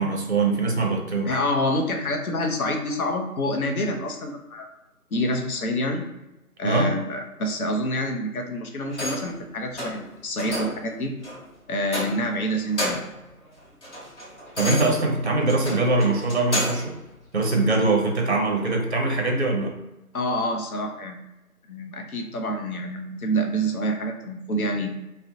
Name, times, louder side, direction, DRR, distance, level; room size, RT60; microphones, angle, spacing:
voice 1, 0.0-1.4 6.6-6.9 14.6-17.0 17.3-19.7, right 3 dB, 50° right, 2 dB, 0.5 m, -22 dB
voice 2, 1.3-4.7 5.1-6.0 6.6-11.1 11.7-13.0 20.1-21.2 21.7-24.9, equal, 70° left, 3 dB, 0.6 m, -27 dB
sound 1, 8.9-9.4 9.8-10.0 10.4-10.8 11.2-11.4 11.9-12.4 12.6-13.2 13.6-16.9 17.4-17.6, left 1 dB, 50° left, 1.1 m, -31 dB
2.5 x 2.1 x 2.5 m, 0.96 s
figure-of-eight pair, 160°, 45 cm